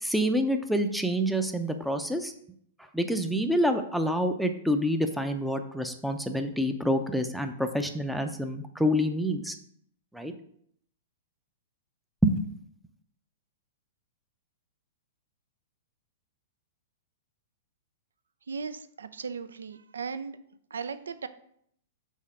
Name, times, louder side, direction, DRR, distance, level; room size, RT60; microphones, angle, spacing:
voice 1, 0.0-2.3 2.9-9.6 10.1-10.3 12.2-12.4, equal, ahead, 6 dB, 0.5 m, -27 dB
voice 2, 18.5-20.4 20.7-21.3, right 5 dB, 70° right, 12 dB, 0.4 m, -37 dB
5.5 x 4.1 x 4.8 m, 0.67 s
figure-of-eight pair, 105°, 0 cm